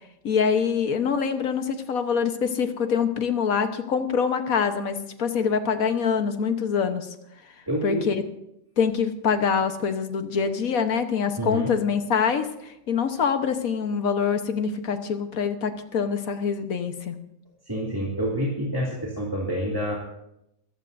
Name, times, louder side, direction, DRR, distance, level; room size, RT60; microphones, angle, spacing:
voice 1, 0.2-7.1 7.8-8.2 8.8-17.2, left 6 dB, 80° left, 7 dB, 1.6 m, -25 dB
voice 2, 7.7-8.1 11.4-11.7 17.6-19.9, equal, 15° right, -3 dB, 2.5 m, -27 dB
24.0 x 14.5 x 2.6 m, 0.80 s
omnidirectional pair, 1.5 m